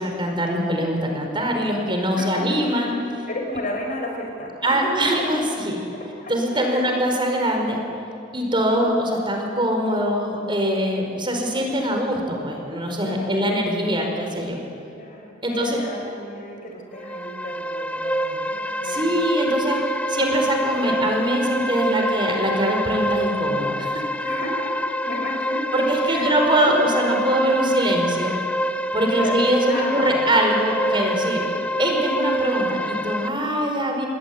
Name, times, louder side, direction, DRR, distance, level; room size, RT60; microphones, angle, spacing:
voice 1, 0.0-3.0 4.6-5.8 6.3-7.8 8.3-14.6 15.4-15.8 18.8-19.8 20.1-24.2 25.7-28.3 28.9-31.4 31.8-34.1, equal, 25° right, 2 dB, 4.9 m, -23 dB
voice 2, 2.1-2.9 3.3-5.1 5.9-7.1 8.5-8.8 13.0-13.8 14.9-19.1 24.2-25.8 26.1-27.1 29.1-30.3 31.5-31.6, left 1 dB, 45° left, 2 dB, 5.6 m, -33 dB
sound 1, 17.0-33.3, equal, 5° left, 0.7 m, -26 dB
28.5 x 21.0 x 9.6 m, 2.6 s
head